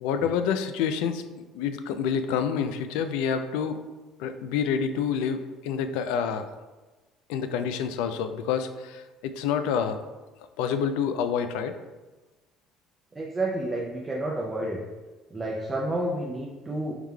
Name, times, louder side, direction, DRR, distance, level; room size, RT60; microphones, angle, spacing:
voice 1, 0.0-1.2 1.5-3.8 4.2-6.5 7.3-10.0 10.6-11.8, left 7 dB, 85° left, 9 dB, 0.3 m, -28 dB
voice 2, 13.1-14.8 15.3-16.9, right 1 dB, 15° right, -3 dB, 0.4 m, -30 dB
4.7 x 3.6 x 2.2 m, 1.2 s
cardioid pair, 120°, 0 cm